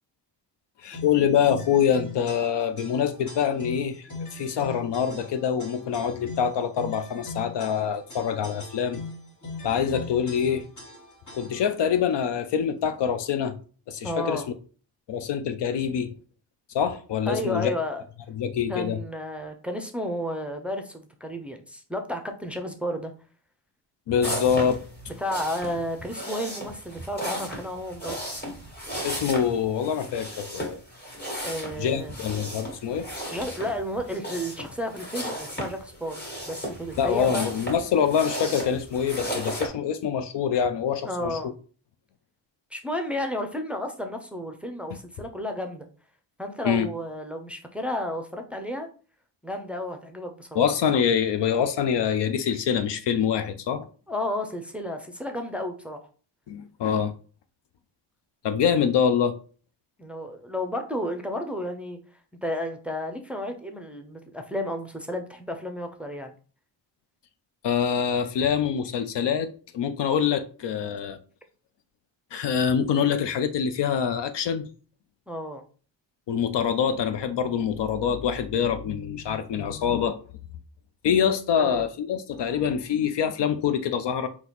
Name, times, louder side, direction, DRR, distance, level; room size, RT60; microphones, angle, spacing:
voice 1, 0.8-4.0 4.3-9.0 9.6-10.7 11.3-13.6 13.9-14.4 15.1-16.1 16.7-17.7 18.3-19.0 24.1-24.8 29.0-30.8 31.8-33.1 37.0-41.4 44.9-45.0 46.6-46.9 50.6-53.9 56.5-57.1 58.4-59.3 67.6-69.5 69.7-71.2 72.3-74.7 76.3-80.2 81.0-84.3, left 7 dB, 65° left, 0.5 m, -25 dB
sound 1, 0.9-11.8, left 3 dB, 40° left, 1.4 m, -41 dB
voice 2, 14.0-14.5 17.3-18.0 18.7-23.1 25.2-28.2 31.4-32.2 33.3-37.5 41.0-41.5 42.7-45.9 46.4-48.9 49.4-50.6 54.1-56.0 60.0-62.0 62.4-66.3 75.3-75.6 81.5-81.9, left 1 dB, 5° right, 0.6 m, -32 dB
sound 2, 24.2-39.7, equal, 20° left, 1.6 m, -35 dB
4.0 x 2.9 x 2.9 m
cardioid pair, 80°, 46 cm